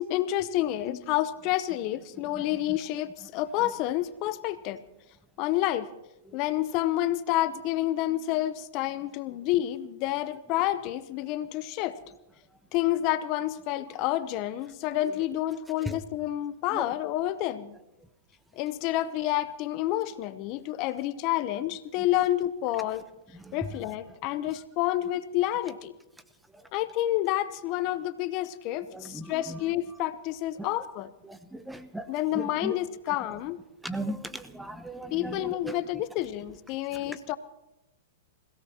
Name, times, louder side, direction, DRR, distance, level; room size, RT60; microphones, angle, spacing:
voice 1, 0.0-4.8 5.4-5.9 6.3-12.0 12.7-17.8 18.6-23.1 23.5-25.9 26.7-31.1 32.1-33.6 35.1-37.4, left 14 dB, 45° left, 14 dB, 0.7 m, -29 dB
voice 2, 28.9-29.3 30.6-30.7 31.3-32.0 32.3-32.7 33.8-35.4 35.7-35.8 37.0-37.2, right 1 dB, 5° right, 11 dB, 0.8 m, -36 dB
28.0 x 16.5 x 2.9 m, 0.92 s
hypercardioid pair, 120°, 0 cm